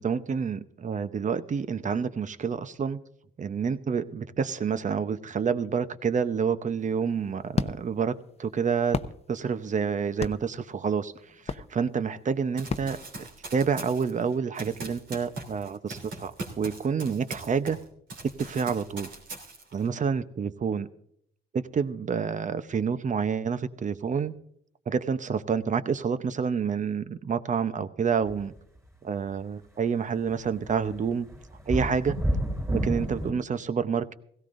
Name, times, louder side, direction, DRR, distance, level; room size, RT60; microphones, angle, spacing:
voice 1, 0.0-3.0 3.4-8.1 8.4-9.0 9.3-11.1 11.5-17.8 18.4-19.1 19.7-20.9 21.5-24.3 24.9-28.5 29.0-31.3 31.7-32.2 32.7-34.1, right 6 dB, 40° right, 13 dB, 0.8 m, -28 dB
sound 1, 6.8-13.8, left 5 dB, 30° left, 0.7 m, -36 dB
Run, 12.6-17.8 18.1-19.9, right 2 dB, 75° right, 3.3 m, -41 dB
sound 2, 28.2-28.4 30.3-30.4 30.7-33.3, right 1 dB, 15° right, 3.8 m, -29 dB
17.0 x 16.5 x 2.6 m, 0.70 s
cardioid pair, 90°, 20 cm